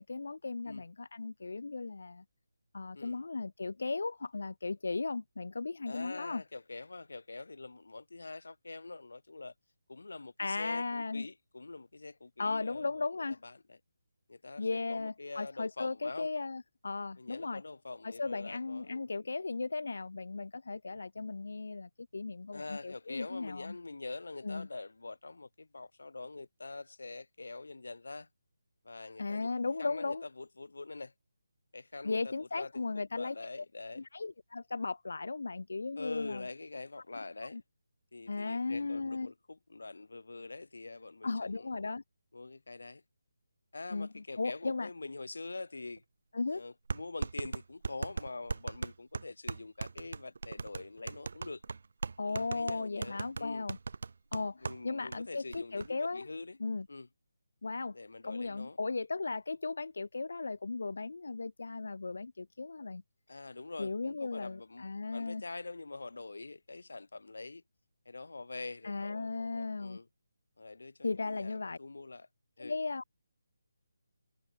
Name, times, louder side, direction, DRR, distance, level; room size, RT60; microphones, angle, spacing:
voice 1, 0.0-2.2 2.7-6.4 10.4-11.3 12.4-13.4 14.6-17.6 18.0-23.8 24.4-24.7 29.2-30.2 32.0-33.6 34.0-36.4 37.5-37.6 38.3-39.3 41.2-42.0 43.9-44.9 46.3-46.6 52.2-53.8 54.3-56.3 56.6-56.9 57.6-57.9 58.2-63.0 63.8-65.4 68.8-70.0 71.0-71.8 72.6-73.1, left 3 dB, 65° left, 3.9 m, -36 dB
voice 2, 5.9-9.5 9.9-13.1 13.4-13.8 14.3-16.3 17.2-19.1 22.5-28.3 28.8-31.1 31.7-34.0 36.0-37.6 38.1-41.7 42.3-43.0 43.7-46.0 46.5-51.6 52.2-53.7 54.6-56.6 56.9-57.1 57.9-58.8 63.3-67.6 68.0-70.1 70.6-72.3 72.6-72.8, left 3 dB, 85° left, 4.9 m, -45 dB
sound 1, 46.0-46.1 46.9-54.8 55.1-55.2 55.5-55.9, right 4 dB, 50° right, 4.2 m, -38 dB
hypercardioid pair, 175°, 0 cm